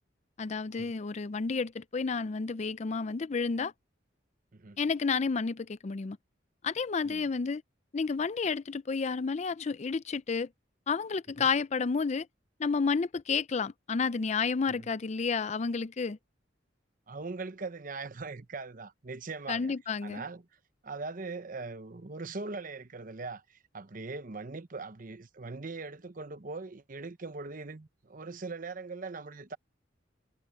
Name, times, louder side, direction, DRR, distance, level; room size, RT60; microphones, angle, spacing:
voice 1, 0.4-3.7 4.8-6.2 6.6-7.6 7.9-10.5 10.9-12.3 12.6-16.2 19.5-20.2, left 5 dB, 35° left, 0.4 m, -31 dB
voice 2, 17.1-19.7 20.0-20.4 20.8-23.4 23.7-29.6, right 3 dB, 45° right, 0.9 m, -40 dB
head